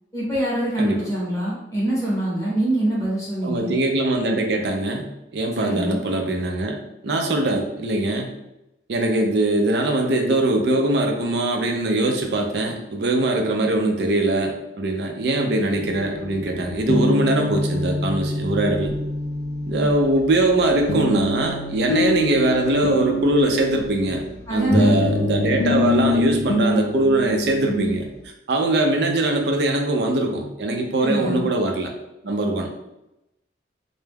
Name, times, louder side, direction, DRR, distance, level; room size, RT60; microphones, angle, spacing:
voice 1, 0.1-3.7 5.6-6.0 24.5-25.0 31.0-31.4, right 1 dB, 20° left, -7 dB, 0.7 m, -24 dB
voice 2, 3.4-5.1 5.3-6.8 7.0-8.3 8.9-18.9 19.6-24.2 24.5-28.1 28.5-31.9 32.2-32.7, right 2 dB, 65° right, 2 dB, 0.4 m, -22 dB
sound 1, 15.7-28.0, left 2 dB, 55° left, 0.3 m, -25 dB
2.2 x 2.0 x 3.3 m, 0.88 s
head